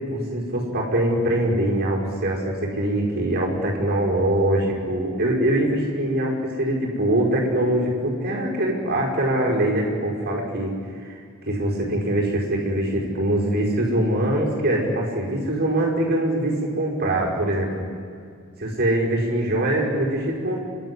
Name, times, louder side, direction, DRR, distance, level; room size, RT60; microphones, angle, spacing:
voice 1, 0.1-10.7 11.0-11.1 11.4-17.9 18.6-20.6, right 1 dB, 45° right, -1 dB, 5.6 m, -23 dB
30.0 x 12.5 x 10.0 m, 2.2 s
head